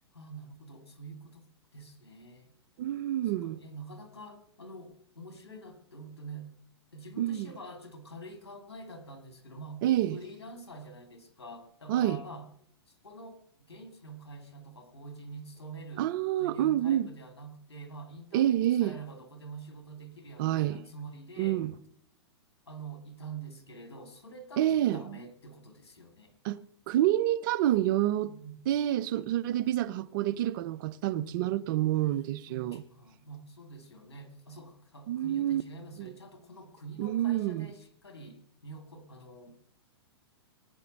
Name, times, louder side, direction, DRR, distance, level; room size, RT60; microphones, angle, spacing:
voice 1, 0.1-1.5 1.7-2.5 3.4-6.5 6.9-9.8 10.1-12.5 12.9-13.4 13.7-16.1 16.4-21.6 22.7-26.3 28.2-28.6 31.1-31.6 32.5-39.5, right 2 dB, 90° left, 2.5 m, -46 dB
voice 2, 2.8-3.6 7.2-7.5 9.8-10.2 11.9-12.2 16.0-17.1 18.3-19.0 20.4-20.8 21.4-21.7 24.6-25.0 26.4-26.6 26.9-28.3 28.7-32.8 35.1-35.6 36.0-36.1 37.0-37.7, right 13 dB, 50° right, 0.8 m, -28 dB
20.5 x 9.8 x 4.1 m
hypercardioid pair, 120°, 14 cm